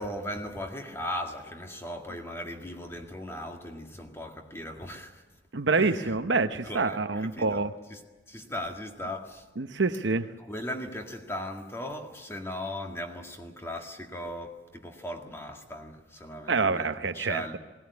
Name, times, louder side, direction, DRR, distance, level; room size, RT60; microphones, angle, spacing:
voice 1, 0.0-5.2 5.7-6.2 6.6-7.6 7.9-8.0 8.3-9.5 10.4-17.6, left 1 dB, 15° left, 2.0 m, -38 dB
voice 2, 5.5-7.7 9.6-10.3 16.5-17.4, right 4 dB, 70° right, 0.9 m, -26 dB
20.0 x 18.0 x 9.7 m
head